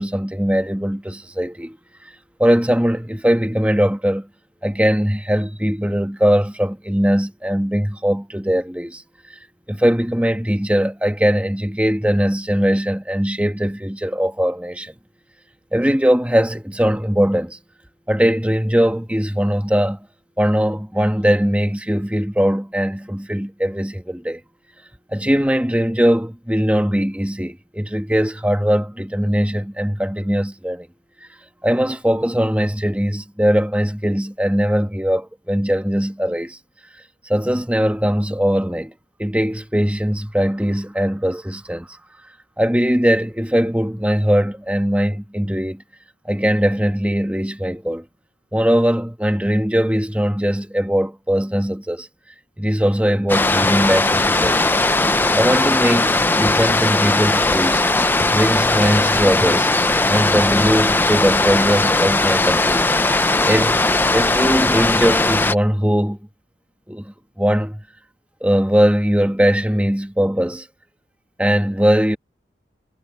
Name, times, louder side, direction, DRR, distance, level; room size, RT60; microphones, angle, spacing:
voice 1, 0.0-1.8 2.4-4.3 4.6-9.0 9.7-14.9 15.7-17.6 18.1-20.1 20.4-24.4 25.1-30.9 31.6-36.6 37.2-38.9 39.2-42.0 42.6-45.8 46.2-48.0 48.5-52.1 52.6-54.8 55.3-57.8 58.3-59.7 60.1-62.8 63.4-63.8 64.1-66.2 66.9-67.8 68.4-70.7 71.4-72.2, equal, 5° right, 1.2 m, -20 dB
sound 1, 53.3-65.5, left 2 dB, 10° left, 0.5 m, -18 dB
head